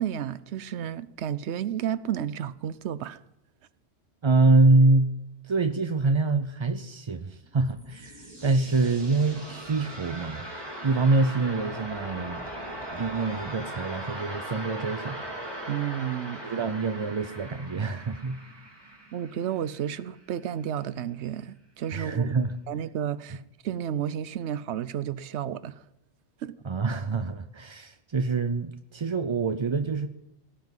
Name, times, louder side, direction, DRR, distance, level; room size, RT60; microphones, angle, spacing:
voice 1, 0.0-3.2 15.7-16.4 19.1-22.3 22.7-25.8 26.4-26.5, right 10 dB, 75° right, 0.9 m, -32 dB
voice 2, 4.2-5.1 5.4-10.4 10.8-12.4 12.9-15.3 16.4-18.4 18.8-19.0 21.9-22.6 26.6-30.1, right 3 dB, 40° right, 0.4 m, -25 dB
sound 1, 7.5-20.3, right 1 dB, 20° right, 2.2 m, -39 dB
17.5 x 6.0 x 9.1 m
omnidirectional pair, 1.2 m